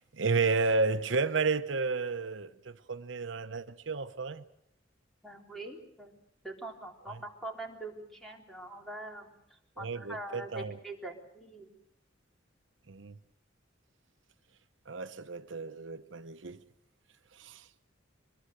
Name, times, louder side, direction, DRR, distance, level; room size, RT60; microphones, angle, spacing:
voice 1, 0.0-4.4 7.1-7.2 9.8-10.8 12.9-13.2 14.9-16.6 17.3-17.7, right 4 dB, 75° right, 0.9 m, -32 dB
voice 2, 5.2-6.1 6.4-9.3 9.8-11.7, right 2 dB, ahead, 3.8 m, -43 dB
23.5 x 22.0 x 7.9 m
head